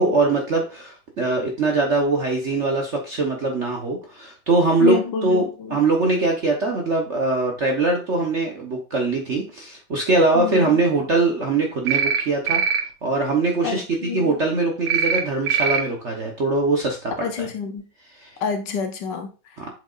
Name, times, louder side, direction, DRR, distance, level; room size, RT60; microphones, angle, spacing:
voice 1, 0.0-12.6 13.0-17.1 17.4-17.5 18.1-18.3 19.6-19.7, right 3 dB, 50° right, 0.9 m, -22 dB
voice 2, 4.8-5.8 10.3-10.8 13.6-14.3 17.2-17.8 18.4-19.3, left 6 dB, 65° left, 1.3 m, -27 dB
sound 1, 11.9-12.2 12.5-12.8 14.9-15.2 15.5-15.8, right 6 dB, 85° right, 1.7 m, -21 dB
7.7 x 5.2 x 2.4 m
omnidirectional pair, 2.3 m